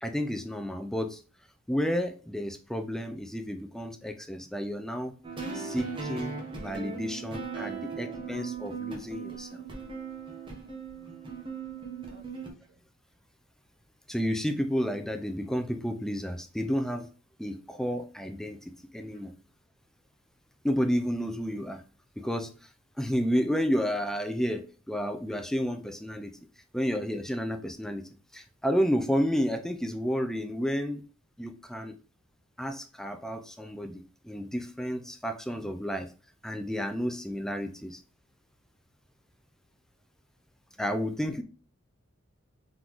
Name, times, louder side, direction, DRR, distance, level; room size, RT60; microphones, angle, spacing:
voice 1, 0.0-1.2 1.7-5.1 5.5-9.6 14.1-17.1 17.4-18.6 18.9-19.3 20.6-21.8 22.2-22.7 23.0-26.5 26.7-31.0 31.4-31.9 32.6-36.1 36.4-38.0 40.8-41.4, equal, ahead, 7 dB, 0.3 m, -31 dB
sound 1, 5.2-12.5, right 5 dB, 25° right, 0.9 m, -38 dB
voice 2, 10.9-11.4 12.1-12.8 35.5-35.8, right 2 dB, 85° right, 2 dB, 1.1 m, -52 dB
3.9 x 3.8 x 3.0 m, 0.37 s
head